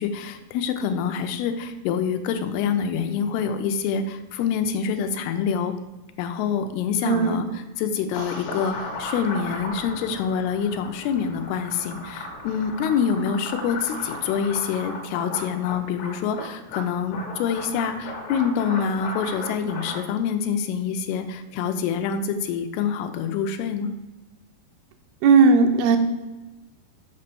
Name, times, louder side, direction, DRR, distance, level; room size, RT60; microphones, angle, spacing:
voice 1, 0.0-5.7 6.2-23.9, left 7 dB, 80° left, 7 dB, 2.6 m, -26 dB
voice 2, 7.0-7.4 25.2-26.0, right 4 dB, 80° right, 6 dB, 2.5 m, -16 dB
sound 1, 8.1-20.0, left 2 dB, 65° left, 2.1 m, -36 dB
6.6 x 5.4 x 6.8 m, 1.2 s
omnidirectional pair, 4.6 m